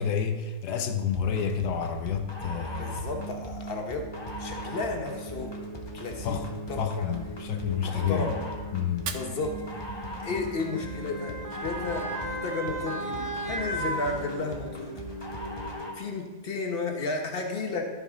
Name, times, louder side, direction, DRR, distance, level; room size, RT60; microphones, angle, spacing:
voice 1, 0.0-3.3 6.2-6.5 6.8-8.4 8.7-9.1, left 7 dB, 90° left, 1.4 m, -29 dB
sound 1, 1.1-16.1, equal, 20° left, 0.8 m, -38 dB
voice 2, 2.8-4.0 4.4-5.5 5.9-6.4 6.7-7.1 7.8-8.4 9.1-9.9 10.2-14.9 15.9-17.8, left 3 dB, 40° left, 1.2 m, -33 dB
Motor vehicle (road) / Siren, 6.0-6.2 7.3-14.9 15.3-15.4, right 2 dB, 20° right, 0.6 m, -37 dB
Fire, 8.9-10.9, right 7 dB, 60° right, 0.8 m, -42 dB
13.5 x 5.4 x 3.7 m
omnidirectional pair, 1.7 m